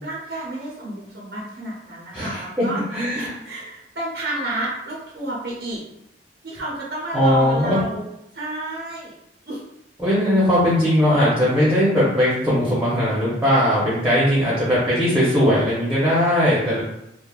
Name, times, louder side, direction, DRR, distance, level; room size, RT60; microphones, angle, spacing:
voice 1, 0.0-2.8 3.1-5.8 6.4-8.1 8.3-9.2 9.4-9.6, right 1 dB, 55° right, -4 dB, 0.5 m, -30 dB
voice 2, 2.9-3.3 7.1-7.8 10.0-16.8, equal, 5° right, -8 dB, 0.7 m, -19 dB
3.2 x 2.0 x 2.3 m, 0.84 s
head